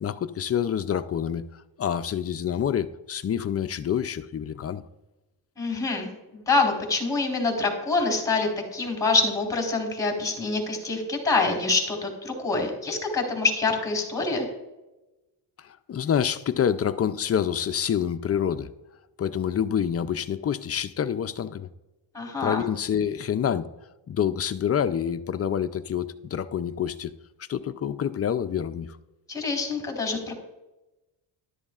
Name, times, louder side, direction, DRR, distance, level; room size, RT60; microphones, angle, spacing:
voice 1, 0.0-1.4 1.8-4.8 15.6-18.7 19.2-21.7 22.4-23.7 24.1-27.1 27.5-28.9, left 8 dB, 35° left, 12 dB, 0.5 m, -27 dB
voice 2, 5.6-14.5 22.1-22.6 29.3-30.3, left 3 dB, 10° left, 3 dB, 3.9 m, -26 dB
13.0 x 11.5 x 2.4 m, 1.0 s
cardioid pair, 105°, 45 cm